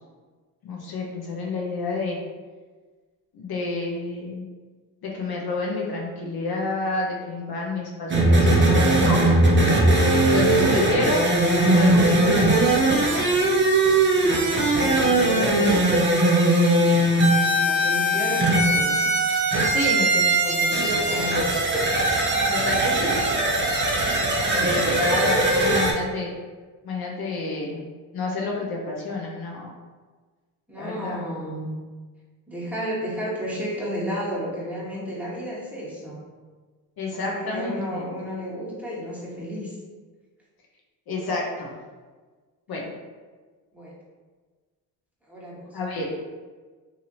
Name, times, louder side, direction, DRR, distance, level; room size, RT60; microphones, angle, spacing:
voice 1, 0.6-2.2 3.3-4.4 5.0-9.2 10.3-11.3 11.5-13.5 14.8-16.4 19.6-21.3 22.5-23.2 24.5-26.3 26.8-27.8 28.1-29.7 30.8-31.2 37.0-38.0 41.1-41.7 42.7-42.9 45.7-46.1, left 2 dB, 45° left, -2 dB, 0.8 m, -29 dB
sound 1, 8.1-25.9, right 1 dB, 25° right, 0.8 m, -20 dB
voice 2, 17.4-19.1 20.4-21.7 24.2-25.0 30.7-31.7 32.5-36.2 37.1-39.8 43.7-43.9 45.3-45.7, equal, 5° right, -7 dB, 1.3 m, -32 dB
2.8 x 2.7 x 2.7 m, 1.4 s
hypercardioid pair, 55°, 50 cm